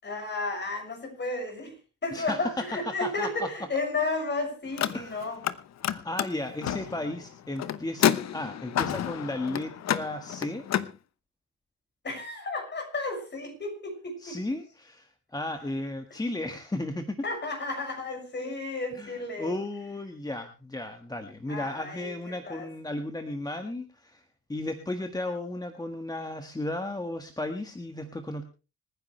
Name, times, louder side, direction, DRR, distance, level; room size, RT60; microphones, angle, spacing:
voice 1, 0.0-5.4 12.0-14.6 17.2-19.6 21.5-22.1 22.5-22.7, left 3 dB, 35° left, 4 dB, 6.5 m, -33 dB
voice 2, 2.1-3.5 4.9-5.3 5.8-10.7 14.2-17.2 19.0-28.4, left 1 dB, 15° left, 6 dB, 1.6 m, -34 dB
Car, 4.7-5.6 5.8-10.9, left 10 dB, 60° left, 1.0 m, -29 dB
25.5 x 10.0 x 3.3 m, 0.32 s
cardioid pair, 90°, 30 cm